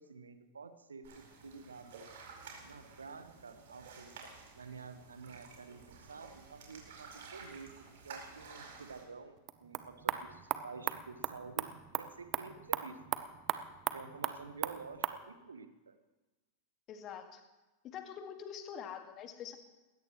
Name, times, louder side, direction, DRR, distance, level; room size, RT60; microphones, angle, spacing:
voice 1, 0.0-2.1 2.6-4.1 4.5-13.0 13.9-16.0, right 4 dB, 75° right, 10 dB, 1.3 m, -50 dB
sound 1, 1.0-9.0, right 5 dB, 60° right, 4.7 m, -52 dB
sound 2, 9.4-15.2, right 12 dB, 35° right, 0.8 m, -38 dB
voice 2, 16.9-17.4 17.8-19.6, left 8 dB, 35° left, 6 dB, 2.0 m, -45 dB
20.0 x 18.0 x 3.1 m, 1.1 s
figure-of-eight pair, 90°, 0 cm